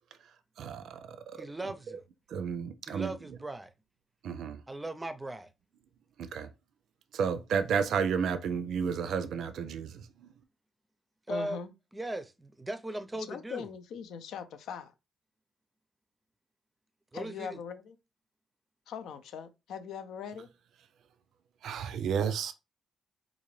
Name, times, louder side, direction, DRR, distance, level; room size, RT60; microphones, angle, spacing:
voice 1, 0.6-1.4 2.3-3.1 4.2-4.6 6.2-6.5 7.1-10.3 21.6-22.5, right 6 dB, 70° right, 0.4 m, -32 dB
voice 2, 1.4-2.0 2.9-3.7 4.7-5.5 11.3-11.6 11.9-13.7 17.1-17.6, right 1 dB, 15° right, 0.5 m, -38 dB
voice 3, 11.3-11.7 13.3-14.9 17.1-18.0 18.9-20.5, left 7 dB, 80° left, 0.5 m, -41 dB
3.7 x 2.5 x 3.1 m
cardioid pair, 90°, 0 cm